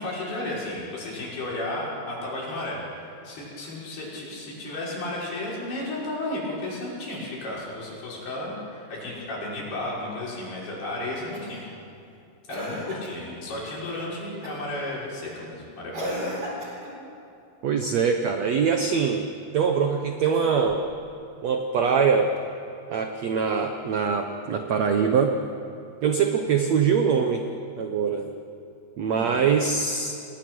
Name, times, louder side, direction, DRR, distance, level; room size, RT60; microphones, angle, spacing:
voice 1, 0.0-11.6 12.5-16.2 29.1-29.3, left 1 dB, 70° left, -6 dB, 7.8 m, -33 dB
Cough, 11.3-11.7 12.5-13.3 14.4-14.8 15.9-17.0 20.1-20.9 22.4-22.5, equal, 25° right, 4.4 m, -35 dB
voice 2, 17.6-19.2 19.5-20.8 21.4-22.3 22.9-25.4 26.0-27.4 27.8-28.3 29.0-30.1, right 6 dB, 80° right, 5 dB, 1.5 m, -23 dB
30.0 x 20.5 x 6.3 m, 2.6 s
omnidirectional pair, 4.7 m